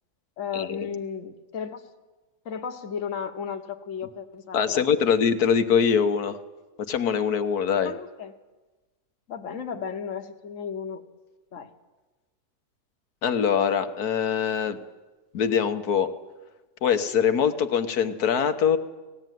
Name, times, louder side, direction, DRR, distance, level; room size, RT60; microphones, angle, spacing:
voice 1, 0.4-1.9 2.4-5.1 7.8-8.3 9.3-11.0 11.5-11.7, left 7 dB, 55° left, 6 dB, 1.5 m, -34 dB
voice 2, 4.5-6.4 6.9-7.9 13.2-14.8 15.3-16.1 16.8-18.8, left 7 dB, 75° left, 9 dB, 1.6 m, -23 dB
18.5 x 15.5 x 9.2 m, 1.2 s
omnidirectional pair, 1.7 m